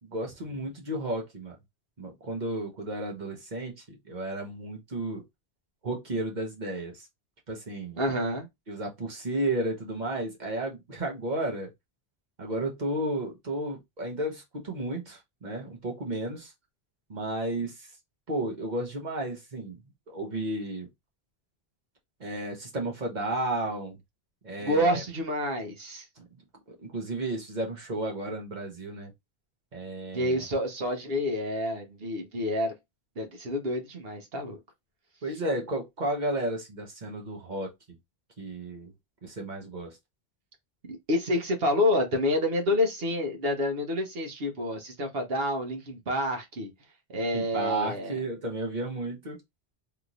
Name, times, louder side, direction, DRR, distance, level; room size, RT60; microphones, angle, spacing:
voice 1, 0.0-1.6 2.0-5.2 5.8-7.1 7.5-8.0 8.7-11.7 12.4-16.5 17.1-17.9 18.3-19.8 20.1-20.9 22.2-24.0 24.4-25.0 26.2-26.3 26.8-29.1 29.7-30.4 35.2-37.7 38.4-38.9 39.2-40.0 47.3-49.4, right 1 dB, 45° right, 1.2 m, -33 dB
voice 2, 8.0-8.5 24.6-26.0 30.1-32.7 33.2-34.6 40.9-46.7 47.1-48.2, left 1 dB, 65° right, 1.2 m, -28 dB
3.5 x 2.9 x 2.4 m
omnidirectional pair, 1.1 m